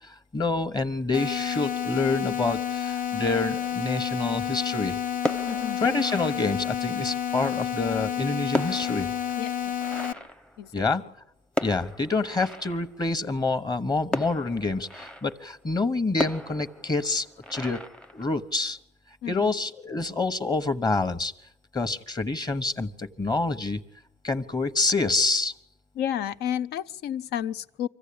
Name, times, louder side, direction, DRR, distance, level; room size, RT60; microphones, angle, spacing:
voice 1, 0.0-5.0 5.8-9.1 10.7-11.0 11.6-17.8 18.1-18.8 19.3-21.3 21.7-23.8 24.2-25.5, left 3 dB, 25° left, 1.2 m, -27 dB
sound 1, 1.1-10.1, left 9 dB, 55° left, 1.3 m, -30 dB
sound 2, 3.2-3.9 5.1-7.0 8.0-11.1 11.5-13.1 14.1-15.5 16.2-18.7, left 1 dB, 5° left, 0.7 m, -36 dB
voice 2, 5.4-5.8 9.4-9.7 10.6-10.8 19.2-19.5 26.0-27.9, left 10 dB, 75° left, 0.7 m, -31 dB
25.0 x 15.0 x 8.7 m
cardioid pair, 110°, 17 cm